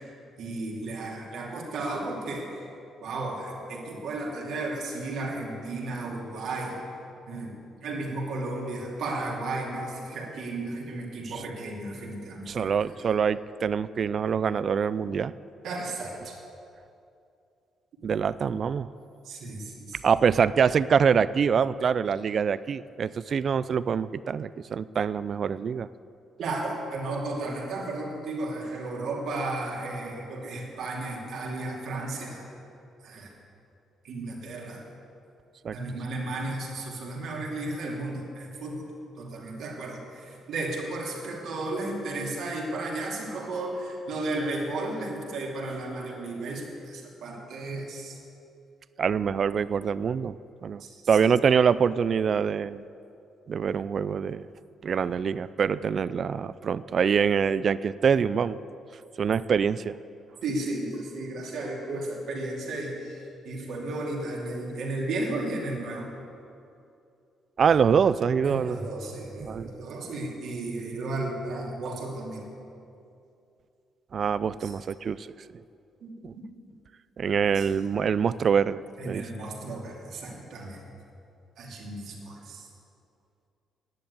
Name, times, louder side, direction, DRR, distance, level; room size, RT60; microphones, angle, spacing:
voice 1, 0.4-2.5 3.0-6.8 7.3-13.0 15.6-16.4 19.2-20.0 26.4-32.5 33.0-33.3 34.0-34.8 35.7-38.9 39.2-48.2 50.8-51.0 60.4-66.1 68.4-72.5 74.6-74.7 76.0-76.1 77.5-77.6 79.0-80.8 81.6-82.7, right 2 dB, 70° right, -2 dB, 2.6 m, -34 dB
voice 2, 12.5-15.3 18.0-18.9 20.0-25.9 35.6-35.8 49.0-50.8 51.1-52.8 53.5-54.5 54.8-58.6 59.2-60.0 67.6-68.8 69.4-69.7 74.1-75.3 76.2-76.3 77.2-79.2, right 6 dB, 50° right, 16 dB, 0.3 m, -25 dB
10.5 x 7.7 x 9.6 m, 2.6 s
cardioid pair, 90°, 0 cm